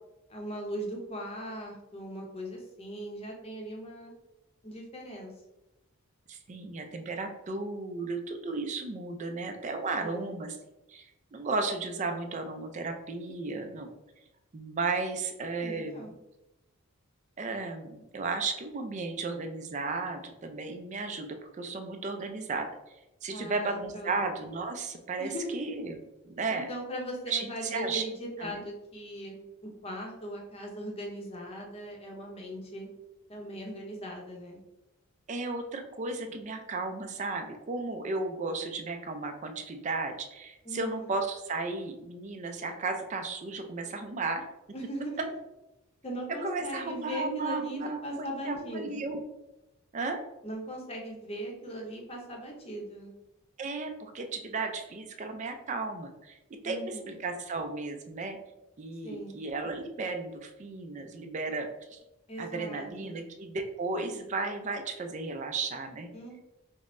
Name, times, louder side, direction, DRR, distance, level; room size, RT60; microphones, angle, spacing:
voice 1, 0.3-4.1 4.6-5.3 10.0-10.4 15.5-16.1 23.3-24.2 25.2-25.6 26.5-32.9 33.3-34.6 40.6-41.1 44.7-45.2 46.0-49.0 50.4-53.1 56.6-57.1 59.0-59.4 62.3-63.2 66.1-66.4, equal, 30° left, 0 dB, 0.7 m, -39 dB
voice 2, 6.3-10.6 10.9-13.9 14.5-16.1 17.4-22.7 23.2-26.7 27.3-28.0 28.4-28.6 35.3-44.4 46.4-49.2 49.9-50.2 53.6-56.4 56.6-58.4 58.8-62.0 62.4-66.1, right 3 dB, 35° right, 5 dB, 0.4 m, -34 dB
5.2 x 2.0 x 2.5 m, 0.94 s
head